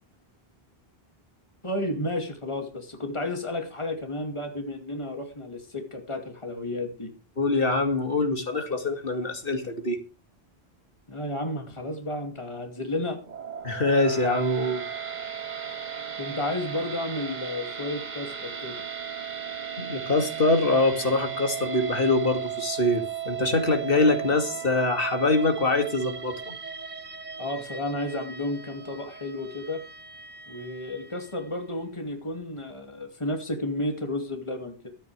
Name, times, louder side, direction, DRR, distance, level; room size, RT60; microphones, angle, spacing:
voice 1, 1.6-7.1 11.1-13.2 16.2-18.8 27.4-29.8 30.5-34.9, left 1 dB, 30° left, 4 dB, 2.5 m, -32 dB
voice 2, 7.4-10.0 13.6-14.8 19.8-26.5, left 2 dB, 60° left, 5 dB, 2.6 m, -24 dB
sound 1, 13.2-31.5, right 8 dB, 45° right, 1.2 m, -36 dB
23.0 x 9.0 x 3.4 m, 0.33 s
omnidirectional pair, 1.1 m